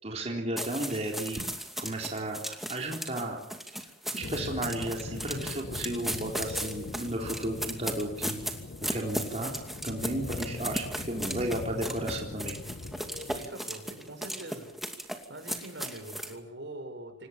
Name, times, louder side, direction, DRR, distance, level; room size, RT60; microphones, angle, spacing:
voice 1, 0.0-1.4 1.8-3.4 4.1-8.4 8.8-9.5 9.8-12.6, right 1 dB, 35° right, 0 dB, 3.9 m, -33 dB
sound 1, 0.6-16.3, equal, ahead, 2.5 m, -37 dB
sound 2, 4.2-13.5, left 3 dB, 70° left, 0.8 m, -41 dB
voice 2, 13.3-14.8 15.3-17.3, right 1 dB, 70° right, 6 dB, 6.3 m, -43 dB
26.5 x 19.0 x 7.3 m, 0.75 s
head